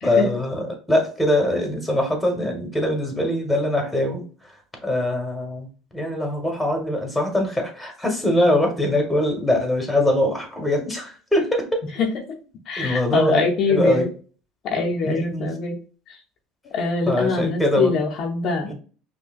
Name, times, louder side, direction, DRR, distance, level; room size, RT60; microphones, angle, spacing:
voice 1, 0.0-4.5 4.8-11.7 12.8-13.4 13.7-14.1 15.0-15.5 17.1-18.0 18.6-18.7, left 1 dB, 5° left, 3 dB, 1.3 m, -22 dB
voice 2, 12.7-14.1 14.6-15.8 16.1-16.2 16.7-18.7, left 4 dB, 50° left, 2 dB, 0.6 m, -23 dB
5.5 x 2.2 x 2.4 m, 0.39 s
supercardioid pair, 105°, 0 cm